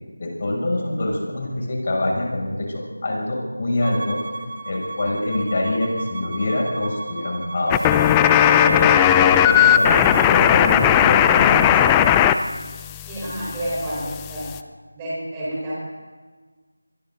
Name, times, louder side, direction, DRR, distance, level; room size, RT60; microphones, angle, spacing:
voice 1, 0.2-4.2 4.7-8.0 8.4-11.8, left 1 dB, 40° left, -1 dB, 7.2 m, -25 dB
Bowed string instrument, 3.8-10.3, right 3 dB, 45° right, 2.9 m, -35 dB
sound 1, 7.7-12.4 12.6-14.6, left 10 dB, 10° left, 0.5 m, -17 dB
voice 2, 13.1-14.5 14.9-15.7, right 1 dB, 15° right, -7 dB, 4.8 m, -29 dB
27.5 x 24.0 x 4.0 m, 1.4 s
figure-of-eight pair, 170°, 0 cm